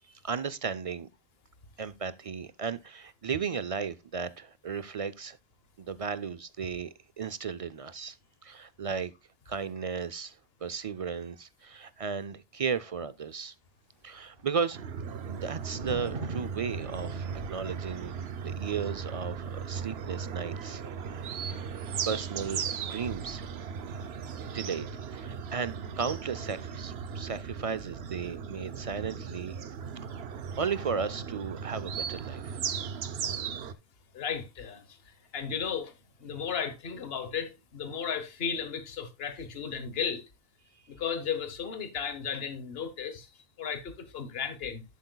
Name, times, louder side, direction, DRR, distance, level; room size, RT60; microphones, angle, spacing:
voice 1, 0.2-1.1 1.8-5.4 5.8-8.2 8.4-9.1 9.5-10.4 10.6-13.5 14.0-14.8 15.3-18.1 18.4-20.8 22.0-23.5 23.8-24.0 24.5-29.6 30.6-32.6, right 6 dB, 45° right, 0.5 m, -35 dB
Thunder, 14.0-28.5 28.8-29.1, right 2 dB, 60° right, 1.5 m, -47 dB
sound 1, 14.7-33.7, right 7 dB, 90° right, 1.0 m, -37 dB
voice 2, 34.1-40.3 40.9-44.8, left 7 dB, 70° left, 1.3 m, -35 dB
11.5 x 7.9 x 2.2 m
omnidirectional pair, 1.0 m